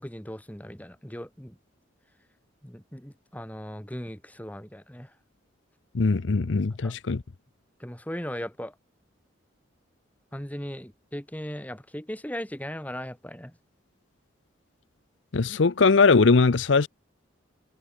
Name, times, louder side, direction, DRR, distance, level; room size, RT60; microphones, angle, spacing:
voice 1, 0.0-1.6 2.6-5.1 6.8-7.0 7.8-8.7 10.3-13.5, equal, 10° left, 2.2 m, -38 dB
voice 2, 5.9-7.2 15.3-16.9, left 4 dB, 70° left, 0.7 m, -20 dB
head